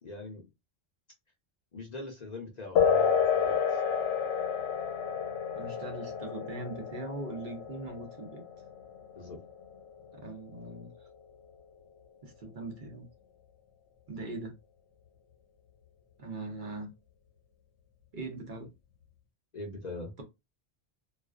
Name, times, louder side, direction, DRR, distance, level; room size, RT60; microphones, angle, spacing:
voice 1, 0.0-0.5 1.7-3.8 9.1-9.4 19.5-20.1, left 2 dB, 45° left, 0.6 m, -42 dB
sound 1, 2.8-10.8, left 7 dB, 85° left, 0.9 m, -30 dB
voice 2, 5.5-8.4 10.1-11.1 12.2-13.1 14.1-14.5 16.2-16.9 18.1-18.7, right 2 dB, 55° right, 0.7 m, -40 dB
2.4 x 2.2 x 2.3 m
omnidirectional pair, 1.1 m